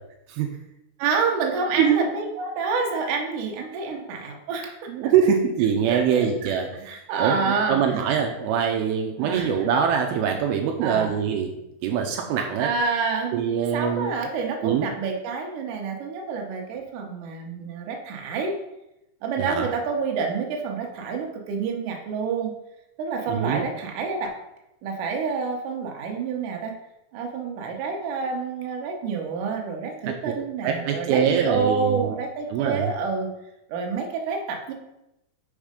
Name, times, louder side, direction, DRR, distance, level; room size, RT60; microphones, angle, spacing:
voice 1, 1.0-4.9 5.9-6.5 6.9-7.8 9.2-9.6 10.8-11.1 12.6-13.5 13.7-18.6 19.2-22.6 23.0-24.3 24.8-26.7 27.1-33.3 33.7-34.7, right 5 dB, 65° right, 1 dB, 2.2 m, -28 dB
voice 2, 4.9-11.5 11.8-12.7 13.3-14.1 14.6-14.9 19.4-19.7 23.3-23.6 30.0-30.1 30.6-32.1 32.5-32.9, right 7 dB, 80° right, 3 dB, 2.5 m, -23 dB
6.4 x 4.9 x 5.1 m, 0.88 s
omnidirectional pair, 4.5 m